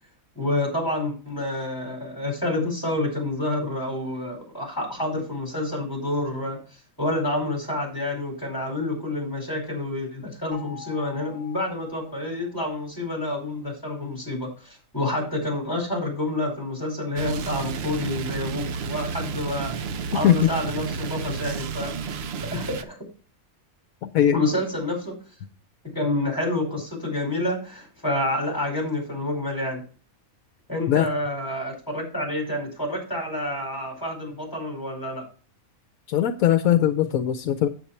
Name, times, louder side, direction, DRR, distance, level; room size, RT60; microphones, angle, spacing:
voice 1, 0.3-6.6 7.0-21.9 22.5-23.0 24.3-25.1 25.9-29.8 30.7-35.2, left 1 dB, 15° left, 1 dB, 4.7 m, -28 dB
sound 1, 10.5-12.7, left 7 dB, 10° right, 2.4 m, -45 dB
sound 2, 17.2-22.8, right 6 dB, 55° right, 0.8 m, -31 dB
voice 2, 24.0-24.3 30.9-31.1 36.1-37.7, left 10 dB, 80° left, 10 dB, 1.1 m, -20 dB
8.4 x 8.0 x 4.3 m, 0.38 s
omnidirectional pair, 1.5 m